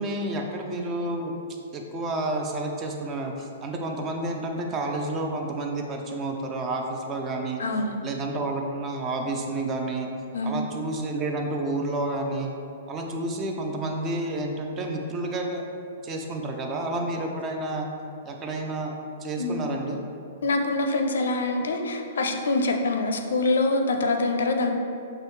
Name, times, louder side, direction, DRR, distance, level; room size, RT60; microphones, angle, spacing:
voice 1, 0.0-1.3 1.7-7.6 8.0-10.1 10.4-12.5 12.9-15.6 16.0-17.9 18.2-18.9 19.2-20.0, right 2 dB, 15° right, 2 dB, 0.3 m, -30 dB
voice 2, 7.6-7.9 10.3-10.6 19.4-19.7 20.4-24.7, left 2 dB, 90° left, 4 dB, 0.5 m, -25 dB
6.0 x 2.7 x 3.2 m, 2.6 s
hypercardioid pair, 170°, 0 cm